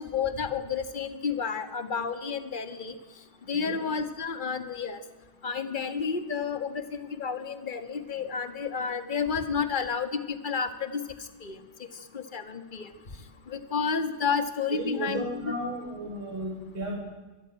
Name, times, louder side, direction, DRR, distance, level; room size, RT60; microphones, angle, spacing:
voice 1, 0.0-2.9 3.5-5.0 5.4-11.0 11.4-11.6 12.1-12.9 13.5-15.4, left 6 dB, 25° left, 9 dB, 1.7 m, -31 dB
voice 2, 14.7-16.9, right 1 dB, 80° right, 0 dB, 4.9 m, -34 dB
24.0 x 19.0 x 9.0 m, 1.2 s
omnidirectional pair, 2.2 m